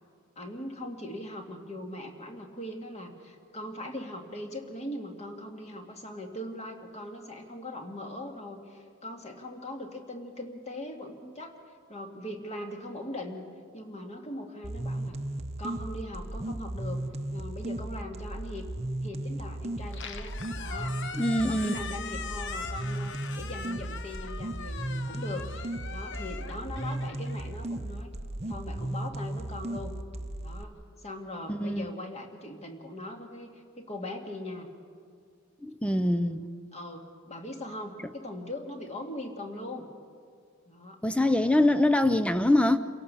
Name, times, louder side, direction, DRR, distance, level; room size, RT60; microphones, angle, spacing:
voice 1, 0.4-11.6 11.9-13.5 13.7-15.2 15.6-17.0 17.3-18.7 19.0-21.0 21.5-28.1 28.5-30.0 30.3-34.7 35.9-39.9 40.7-41.0, left 1 dB, 35° left, 3 dB, 2.1 m, -40 dB
sound 1, 14.6-30.6, right 1 dB, 30° right, 0.9 m, -35 dB
Squeak, 19.8-28.0, left 6 dB, 60° left, 0.9 m, -41 dB
voice 2, 21.2-21.7 31.5-31.9 35.6-36.4 41.0-42.8, left 1 dB, 5° left, 11 dB, 0.5 m, -24 dB
28.0 x 17.5 x 6.9 m, 2.2 s
head